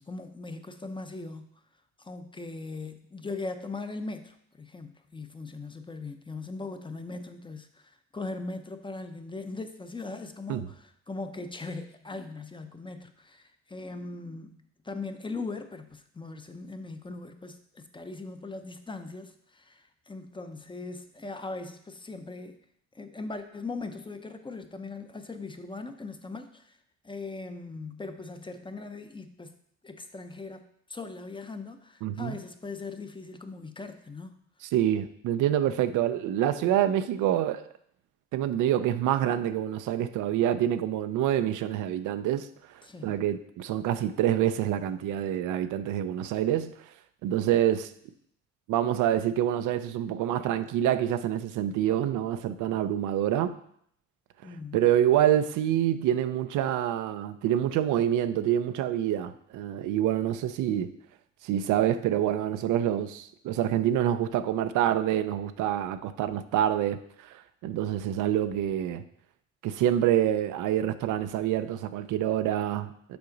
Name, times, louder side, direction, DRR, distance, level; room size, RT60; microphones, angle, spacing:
voice 1, 0.0-1.5 2.0-7.7 8.1-22.6 22.9-26.7 27.0-29.5 29.8-34.4 42.8-43.1 54.4-54.8, left 3 dB, 15° left, 8 dB, 0.6 m, -40 dB
voice 2, 32.0-32.4 34.6-37.6 38.3-46.7 47.2-47.9 48.7-53.6 54.7-60.9 61.4-69.0 69.6-73.2, right 11 dB, 90° right, 11 dB, 0.5 m, -27 dB
7.0 x 4.9 x 3.9 m, 0.68 s
cardioid pair, 90°, 30 cm